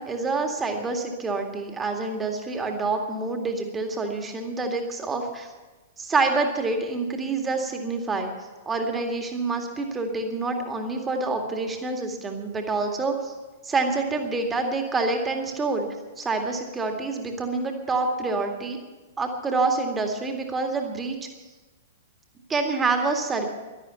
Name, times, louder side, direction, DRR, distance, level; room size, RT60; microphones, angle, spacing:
voice 1, 0.0-5.5 6.0-8.3 8.7-13.3 13.6-15.9 16.2-18.8 19.2-21.2 22.5-23.4, right 3 dB, 15° right, 4 dB, 2.1 m, -27 dB
12.0 x 11.5 x 8.3 m, 1.2 s
figure-of-eight pair, 105°, 0 cm